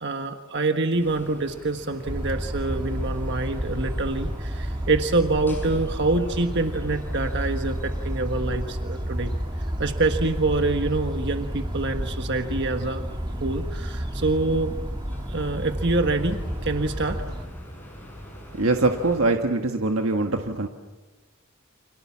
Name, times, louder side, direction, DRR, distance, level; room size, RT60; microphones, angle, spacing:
voice 1, 0.0-9.3 9.8-13.1 13.4-14.7 15.3-17.2, right 3 dB, 55° right, 6 dB, 1.4 m, -26 dB
sound 1, 0.9-19.2, equal, 10° left, 6.7 m, -44 dB
sound 2, 2.0-17.5, equal, 20° right, 2.3 m, -31 dB
voice 2, 18.5-20.7, right 2 dB, 70° right, 4 dB, 1.5 m, -23 dB
30.0 x 27.0 x 7.4 m, 1.2 s
head